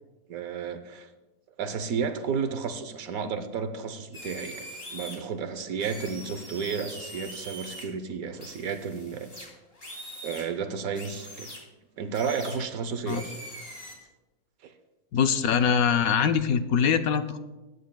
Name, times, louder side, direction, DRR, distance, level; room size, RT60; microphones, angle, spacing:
voice 1, 0.3-1.1 1.6-4.6 4.9-9.3 10.2-11.5 12.0-13.4 14.6-14.7, right 6 dB, 65° right, 9 dB, 1.2 m, -32 dB
sound 1, 4.1-5.1 5.8-7.8 8.4-10.5 10.9-11.6 12.1-12.6 13.0-14.0, equal, 35° left, 3.0 m, -42 dB
voice 2, 15.1-17.4, left 7 dB, 70° left, 9 dB, 1.0 m, -23 dB
20.5 x 9.4 x 2.3 m, 1.1 s
omnidirectional pair, 1.7 m